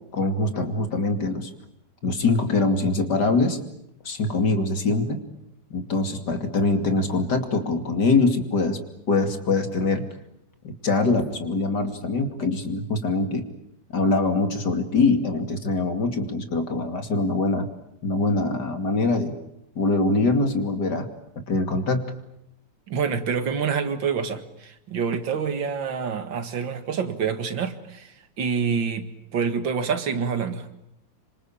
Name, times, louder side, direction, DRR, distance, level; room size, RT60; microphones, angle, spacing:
voice 1, 0.1-1.5 2.0-3.6 4.0-5.2 5.7-8.8 9.1-10.0 10.6-13.5 13.9-17.7 18.0-19.4 19.8-21.1 21.5-22.1, left 3 dB, 60° left, 7 dB, 3.2 m, -23 dB
voice 2, 22.9-30.7, right 6 dB, 85° right, 10 dB, 2.6 m, -27 dB
27.0 x 25.5 x 8.8 m, 0.78 s
omnidirectional pair, 2.0 m